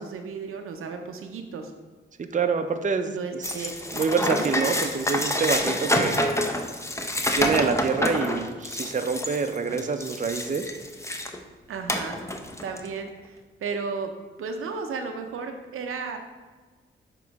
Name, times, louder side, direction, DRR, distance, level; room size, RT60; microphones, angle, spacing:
voice 1, 0.0-1.7 3.1-3.7 4.4-4.6 11.7-12.2 12.6-14.1 14.4-16.2, right 5 dB, 90° right, 5 dB, 0.6 m, -34 dB
voice 2, 2.3-3.1 3.9-6.2 7.3-10.6, right 5 dB, 35° right, 7 dB, 0.5 m, -26 dB
sound 1, 3.4-11.4 11.9-12.9, left 1 dB, 15° left, 0.7 m, -28 dB
7.1 x 3.0 x 4.6 m, 1.4 s
cardioid pair, 60°, 21 cm